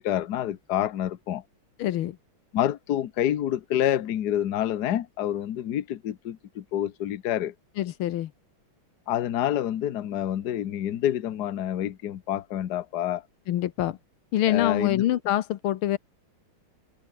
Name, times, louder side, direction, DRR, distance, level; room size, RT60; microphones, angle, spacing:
voice 1, 0.0-1.4 2.5-7.5 9.1-13.2 14.5-15.0, left 11 dB, 55° left, 1.4 m, -27 dB
voice 2, 1.8-2.2 7.8-8.3 13.5-14.0 14.3-16.0, left 13 dB, 80° left, 1.7 m, -25 dB
omnidirectional pair, 2.3 m